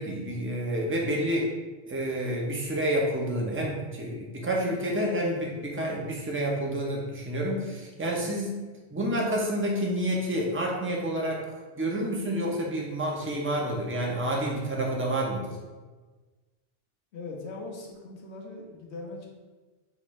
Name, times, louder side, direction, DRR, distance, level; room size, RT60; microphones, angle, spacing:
voice 1, 0.0-1.5 1.9-8.6 8.9-11.4 11.7-15.6, right 1 dB, 15° right, -2 dB, 0.5 m, -29 dB
voice 2, 17.1-19.3, left 3 dB, 75° left, -1 dB, 1.0 m, -40 dB
6.0 x 2.5 x 3.1 m, 1.3 s
omnidirectional pair, 1.1 m